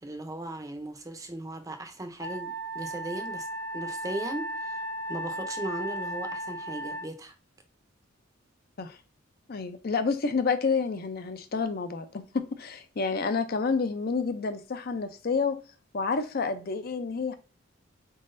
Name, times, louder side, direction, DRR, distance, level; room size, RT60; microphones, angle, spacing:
voice 1, 0.0-3.5 3.7-7.3, right 1 dB, 15° right, 0.6 m, -37 dB
Wind instrument woodwind instrument, 2.2-7.1, right 1 dB, 70° right, 1.3 m, -35 dB
voice 2, 9.5-15.6 15.9-17.3, left 4 dB, 50° left, 0.5 m, -29 dB
4.2 x 3.8 x 2.5 m
head